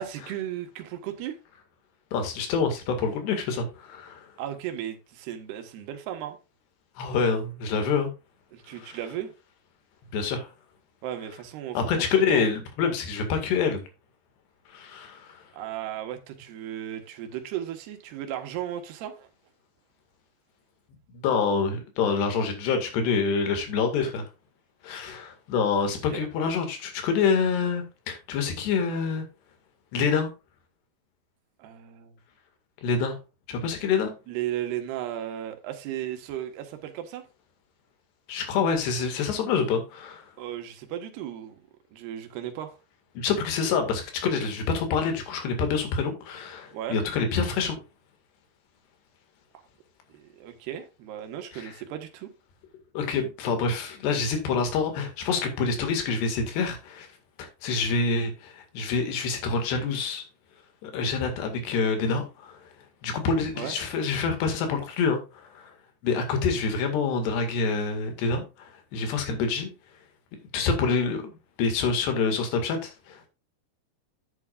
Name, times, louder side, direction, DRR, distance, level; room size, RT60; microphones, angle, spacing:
voice 1, 0.0-1.4 4.4-6.4 8.5-9.3 11.0-12.5 15.5-19.3 26.1-26.3 31.6-32.1 34.3-37.3 40.4-41.6 41.9-42.8 46.7-47.0 50.1-52.3 63.5-63.7, right 11 dB, 75° right, 3.3 m, -35 dB
voice 2, 2.1-4.3 7.0-8.1 8.8-9.0 10.1-10.5 11.8-13.8 14.7-15.3 21.1-24.3 24.8-29.3 29.9-30.3 32.8-33.2 33.5-34.1 38.3-40.3 43.2-47.8 51.6-51.7 52.9-57.1 57.4-60.2 60.8-62.6 63.0-65.2 65.6-65.7 66.0-69.7 70.5-73.3, left 5 dB, 75° left, 4.1 m, -26 dB
10.5 x 8.6 x 2.5 m
omnidirectional pair, 4.9 m